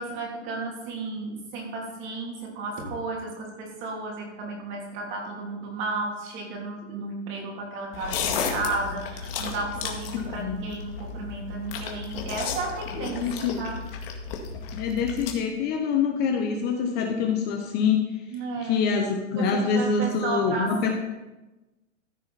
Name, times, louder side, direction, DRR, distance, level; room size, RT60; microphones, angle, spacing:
voice 1, 0.0-13.8 18.3-18.8 19.3-20.9, right 3 dB, 30° right, -1 dB, 3.1 m, -33 dB
sound 1, 7.9-15.3, left 6 dB, 50° left, 2.0 m, -33 dB
voice 2, 10.2-10.6 12.9-13.6 14.7-18.0 18.7-20.9, left 6 dB, 25° left, 3 dB, 1.1 m, -25 dB
14.5 x 6.6 x 4.3 m, 1.1 s
hypercardioid pair, 140°, 37 cm